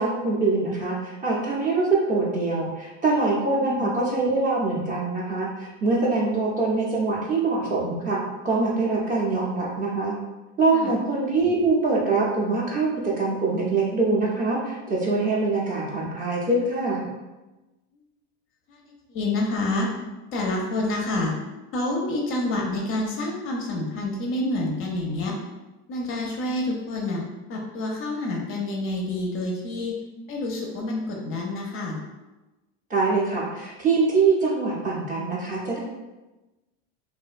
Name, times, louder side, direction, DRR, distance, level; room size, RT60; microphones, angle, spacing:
voice 1, 0.0-10.2 10.6-17.0 32.9-35.8, right 3 dB, 25° right, -4 dB, 0.4 m, -24 dB
voice 2, 3.6-3.9 10.7-11.0 18.7-19.9 20.3-21.3 21.7-25.4 25.9-27.2 27.5-30.0 30.3-32.0, left 2 dB, 35° left, 0 dB, 0.4 m, -28 dB
2.5 x 2.1 x 2.3 m, 1.1 s
supercardioid pair, 105°, 38 cm